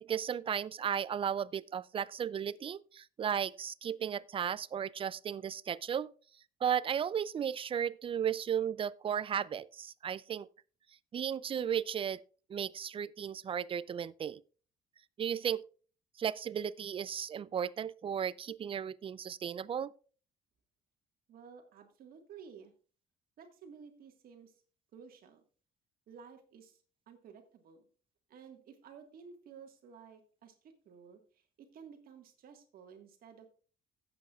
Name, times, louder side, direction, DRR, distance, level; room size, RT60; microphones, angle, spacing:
voice 1, 0.0-6.1 6.6-10.5 11.1-12.2 12.5-14.4 15.2-15.6 16.2-19.9, right 8 dB, 30° right, 0.4 m, -35 dB
voice 2, 21.3-22.7 23.4-24.6 24.9-25.4 26.1-27.9 28.3-33.5, right 6 dB, 60° right, 1.7 m, -54 dB
16.5 x 7.8 x 2.4 m
cardioid pair, 110°, 17 cm